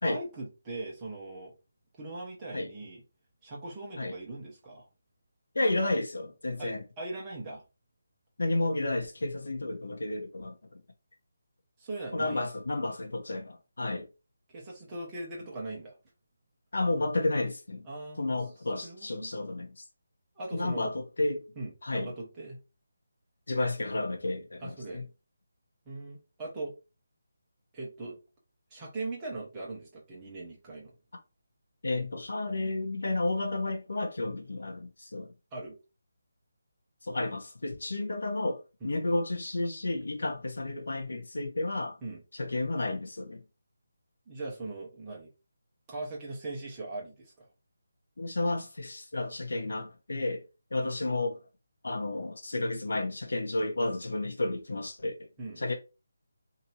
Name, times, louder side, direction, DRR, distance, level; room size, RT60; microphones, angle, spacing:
voice 1, 0.0-1.5 2.0-3.0 3.4-4.9 6.6-7.6 11.8-12.5 14.5-16.0 17.9-18.4 18.7-19.3 20.4-20.9 21.6-22.6 24.6-25.0 25.9-26.7 27.7-28.2 28.7-30.9 35.5-35.8 38.8-39.0 42.0-42.2 44.3-45.3 45.9-47.5 50.7-50.9 55.4-55.6, right 2 dB, 10° right, 0.9 m, -40 dB
voice 2, 5.5-6.8 8.4-10.6 12.1-14.1 16.7-17.9 18.2-19.8 20.5-21.4 21.8-22.1 23.5-25.0 31.8-35.3 37.1-42.0 42.4-43.4 48.2-50.4 50.7-51.4 51.8-55.1 55.6-55.7, left 2 dB, 80° left, 0.9 m, -31 dB
2.9 x 2.7 x 4.1 m
hypercardioid pair, 175°, 0 cm